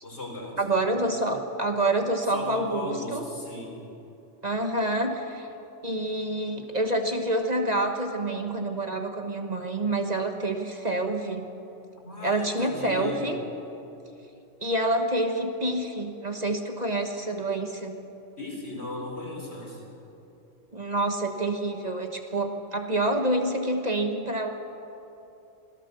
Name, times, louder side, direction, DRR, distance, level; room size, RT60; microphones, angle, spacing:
voice 1, 0.0-0.6 2.3-3.8 12.0-13.3 18.4-19.8, left 2 dB, 65° left, -1 dB, 5.2 m, -36 dB
voice 2, 0.6-3.2 4.4-5.5 5.8-11.5 12.2-13.4 14.6-18.0 20.7-24.5, right 1 dB, 35° right, 4 dB, 1.4 m, -27 dB
25.5 x 17.5 x 6.9 m, 2.8 s
omnidirectional pair, 1.2 m